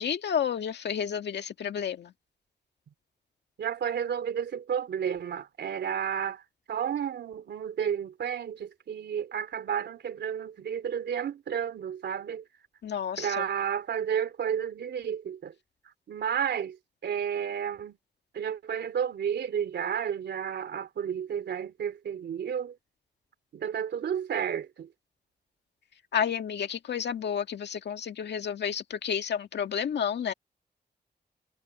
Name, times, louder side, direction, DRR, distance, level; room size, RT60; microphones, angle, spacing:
voice 1, 0.0-2.1 12.8-13.4 26.1-30.3, left 8 dB, 85° left, 2.0 m, -31 dB
voice 2, 3.6-6.4 6.7-12.4 13.2-15.5 16.1-18.0 18.3-22.8 23.5-24.9, right 8 dB, 90° right, 3.2 m, -31 dB
cardioid pair, 70°, 17 cm